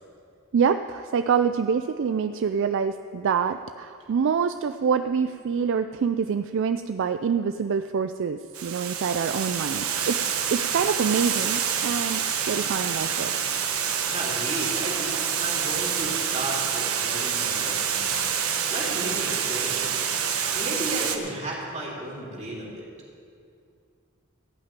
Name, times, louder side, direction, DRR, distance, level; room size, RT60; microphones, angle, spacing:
voice 1, 0.5-13.3, right 6 dB, 60° right, 9 dB, 0.4 m, -26 dB
Water, 8.5-21.2, right 7 dB, 85° right, 1.1 m, -27 dB
voice 2, 14.1-18.2 18.7-19.9 20.5-22.8, right 1 dB, 35° right, -4 dB, 3.0 m, -34 dB
15.5 x 5.9 x 9.1 m, 2.3 s
head